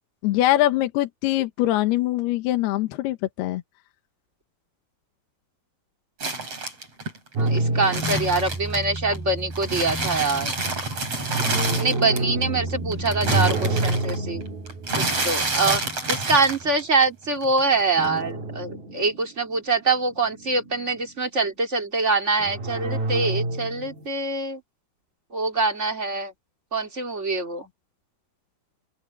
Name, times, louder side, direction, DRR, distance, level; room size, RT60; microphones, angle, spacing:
voice 1, 0.2-3.6, left 15 dB, 80° left, 3.0 m, -23 dB
sound 1, 6.2-9.2 9.5-12.4 12.7-17.0 17.3-18.2, right 3 dB, 35° right, 8.5 m, -28 dB
voice 2, 7.4-10.5 11.5-14.4 15.0-15.8 16.1-24.6 25.3-26.3 26.7-27.7, right 3 dB, 20° right, 3.3 m, -24 dB
sound 2, 7.4-16.7 18.0-19.6 19.9-21.0 22.4-24.0, right 2 dB, 65° right, 7.1 m, -29 dB
open air
omnidirectional pair, 4.7 m